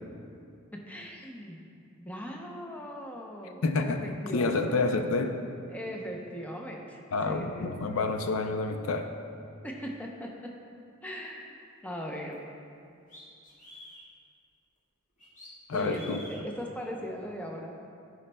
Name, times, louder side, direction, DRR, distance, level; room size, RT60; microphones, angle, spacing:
voice 1, 0.7-1.6 2.0-5.0 5.7-8.0 9.6-10.5 11.0-12.4 15.7-17.8, equal, 5° left, 0 dB, 0.6 m, -39 dB
voice 2, 3.6-4.0 4.3-5.4 7.1-9.1 15.7-16.2, left 3 dB, 70° left, 6 dB, 0.5 m, -28 dB
sound 1, 12.3-12.4 13.1-14.0 15.2-16.4, left 1 dB, 35° left, 1.8 m, -48 dB
14.0 x 5.1 x 2.2 m, 2.5 s
head